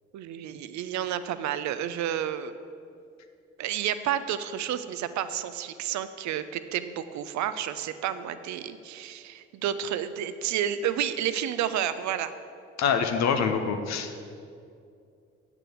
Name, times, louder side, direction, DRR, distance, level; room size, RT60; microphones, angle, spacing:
voice 1, 0.1-2.5 3.6-12.3, right 10 dB, 60° right, 12 dB, 0.7 m, -30 dB
voice 2, 12.8-14.1, left 6 dB, 55° left, 7 dB, 1.0 m, -25 dB
8.2 x 7.1 x 8.3 m, 2.4 s
hypercardioid pair, 40°, 32 cm